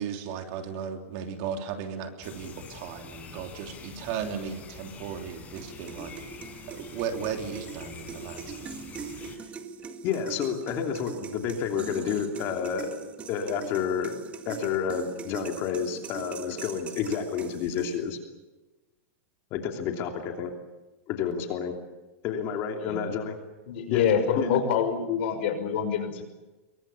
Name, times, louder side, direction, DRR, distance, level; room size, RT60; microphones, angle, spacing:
voice 1, 0.0-6.1 6.7-8.7, right 7 dB, 45° right, 5 dB, 3.3 m, -36 dB
sound 1, 2.2-9.4, left 6 dB, 20° left, 5.4 m, -46 dB
sound 2, 5.6-18.2, right 6 dB, 15° right, 1.8 m, -41 dB
voice 2, 10.0-13.0 13.3-14.2 14.4-18.2 19.5-20.5 21.1-21.7 22.2-23.3 23.9-24.1 24.4-24.6, left 7 dB, 35° left, 4 dB, 3.0 m, -30 dB
voice 3, 23.7-26.2, left 7 dB, 55° left, 8 dB, 5.7 m, -26 dB
27.0 x 23.0 x 7.0 m, 1.1 s
supercardioid pair, 160°, 7 cm